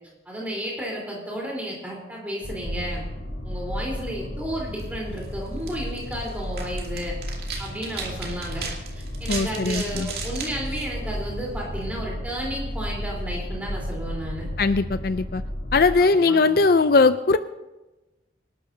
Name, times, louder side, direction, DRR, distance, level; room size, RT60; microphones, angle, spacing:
voice 1, 0.3-3.0 3.4-7.1 7.6-8.6 8.9-14.5 16.0-16.4, equal, 10° right, -3 dB, 3.9 m, -32 dB
sound 1, 2.4-15.9, equal, 80° left, 4.4 m, -33 dB
sound 2, 4.7-11.6, right 5 dB, 60° right, 2.4 m, -38 dB
voice 2, 9.3-10.1 14.6-15.4 15.7-17.4, left 4 dB, 55° left, 11 dB, 0.4 m, -20 dB
25.5 x 12.5 x 2.8 m, 1.1 s
head